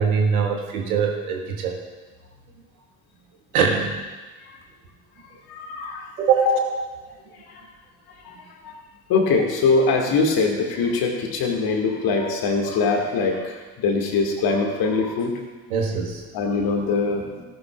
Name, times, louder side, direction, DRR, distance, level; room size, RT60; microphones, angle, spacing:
voice 1, 0.0-1.8 3.5-4.0 6.2-6.5 15.7-16.2, right 6 dB, 75° right, 1 dB, 1.7 m, -22 dB
voice 2, 5.5-6.1 6.5-6.6 7.4-7.7 8.2-8.4 8.6-8.7 9.1-15.4 16.3-17.4, left 4 dB, 55° left, 2 dB, 2.1 m, -22 dB
17.0 x 11.0 x 2.4 m, 1.3 s
figure-of-eight pair, 45°, 44 cm